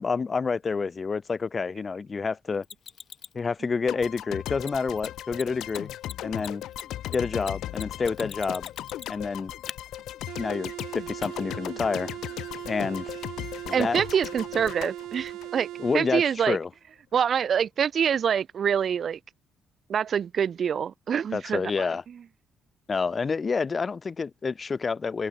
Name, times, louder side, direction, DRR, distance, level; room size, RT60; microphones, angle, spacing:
voice 1, 0.0-2.6 3.3-5.9 6.2-6.6 7.1-8.7 9.1-9.5 10.4-12.1 12.6-13.1 13.7-14.0 15.8-16.7 21.3-22.0 22.9-25.3, left 5 dB, 35° left, 1.0 m, -28 dB
Mechanisms, 2.6-3.4 4.6-4.7 5.0-5.1 5.3-5.4 5.7-9.3 9.7-9.8 11.2-11.3, left 8 dB, 55° left, 4.4 m, -41 dB
sound 1, 3.9-16.1, left 13 dB, 80° left, 5.7 m, -37 dB
sound 2, 10.3-16.0, right 14 dB, 85° right, 1.2 m, -39 dB
voice 2, 13.7-15.7 15.9-16.6 17.1-19.2 19.9-21.6, right 8 dB, 55° right, 0.6 m, -25 dB
cardioid pair, 90°, 0 cm